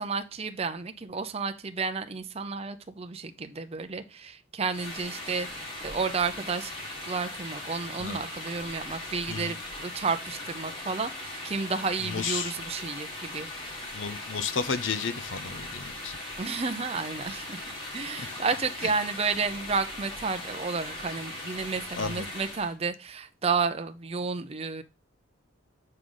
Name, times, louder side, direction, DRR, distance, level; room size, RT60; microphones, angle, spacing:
voice 1, 0.0-6.7 7.1-9.6 9.8-13.8 16.4-24.8, right 4 dB, 30° right, 0.5 m, -31 dB
sound 1, 4.7-22.7, left 1 dB, 25° left, 2.2 m, -39 dB
voice 2, 12.1-12.5 13.9-16.2 22.0-22.3, left 5 dB, 70° left, 0.6 m, -32 dB
7.7 x 4.9 x 3.8 m
head